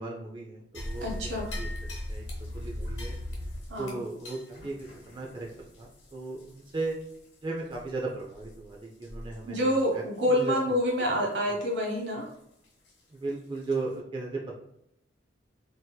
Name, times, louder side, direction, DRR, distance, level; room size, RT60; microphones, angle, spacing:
voice 1, 0.0-1.7 2.1-2.2 2.5-3.1 3.8-7.0 7.4-10.0 10.3-10.5 13.1-14.6, right 3 dB, 25° right, -1 dB, 0.4 m, -36 dB
sound 1, 0.7-7.3 7.7-7.8 8.3-8.5 9.0-9.4 9.7-9.8 10.4-10.5 12.8-12.9 13.5-13.6, left 1 dB, 70° left, 0.9 m, -39 dB
voice 2, 1.0-1.5 3.7-4.0 9.4-12.3, equal, 75° right, 0 dB, 1.0 m, -27 dB
3.9 x 2.6 x 2.2 m, 0.77 s
head